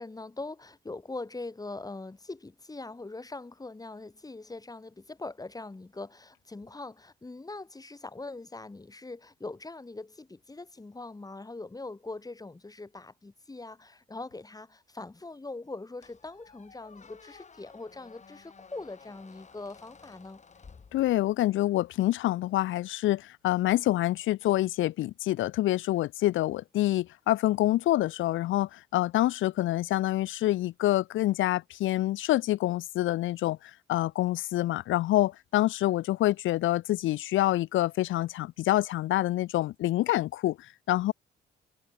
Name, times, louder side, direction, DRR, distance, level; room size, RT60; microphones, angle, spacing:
voice 1, 0.0-20.4, left 3 dB, 20° left, 4.1 m, -42 dB
Squeak, 16.0-21.5, left 5 dB, 35° left, 5.6 m, -54 dB
voice 2, 20.9-33.6 33.9-40.6 40.9-41.1, left 15 dB, 80° left, 0.7 m, -26 dB
cardioid pair, 90°, 20 cm